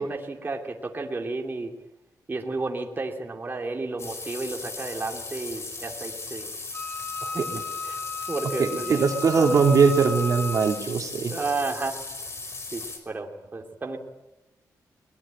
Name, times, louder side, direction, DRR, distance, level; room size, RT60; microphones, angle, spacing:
voice 1, 0.0-1.7 2.3-6.5 7.2-7.4 7.8-8.0 8.3-9.0 9.4-9.6 11.3-12.0 12.7-14.0, right 3 dB, 30° right, 1 dB, 2.6 m, -32 dB
sound 1, 4.0-13.0, left 3 dB, 40° left, 5.0 m, -37 dB
Wind instrument woodwind instrument, 6.7-10.9, left 4 dB, 25° left, 4.2 m, -34 dB
voice 2, 8.6-11.3, right 5 dB, 55° right, 3 dB, 2.9 m, -21 dB
22.5 x 20.5 x 9.0 m, 1.0 s
cardioid pair, 110°, 7 cm